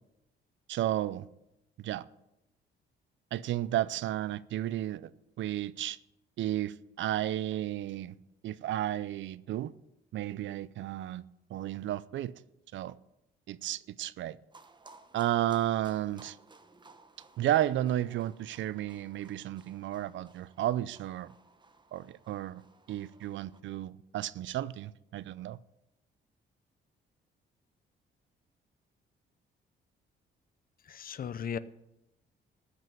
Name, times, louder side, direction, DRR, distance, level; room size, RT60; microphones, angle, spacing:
voice 1, 0.7-1.3 1.8-2.1 3.3-5.1 5.4-6.0 6.4-8.2 8.4-9.7 10.1-12.3 12.7-13.0 13.5-14.4 15.1-16.4 17.4-21.3 21.9-22.6 22.9-25.6, right 13 dB, 70° right, 0.5 m, -33 dB
sound 1, 14.5-23.6, right 3 dB, 20° right, 1.1 m, -58 dB
voice 2, 30.9-31.6, left 7 dB, 45° left, 0.6 m, -36 dB
14.0 x 5.5 x 9.2 m
cardioid pair, 90°, 20 cm